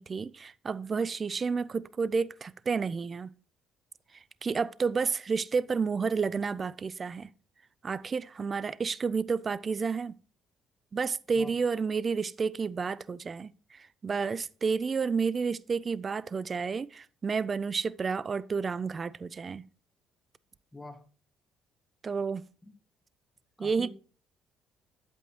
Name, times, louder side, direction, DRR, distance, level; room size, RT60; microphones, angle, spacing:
voice 1, 0.0-3.3 4.4-7.3 7.8-10.2 10.9-19.6 22.0-22.5 23.6-23.9, right 5 dB, 35° right, 0.3 m, -30 dB
voice 2, 20.7-21.0 22.6-22.7 23.6-23.9, left 1 dB, 5° left, 1.6 m, -45 dB
8.6 x 8.4 x 3.1 m
cardioid pair, 105°, 0 cm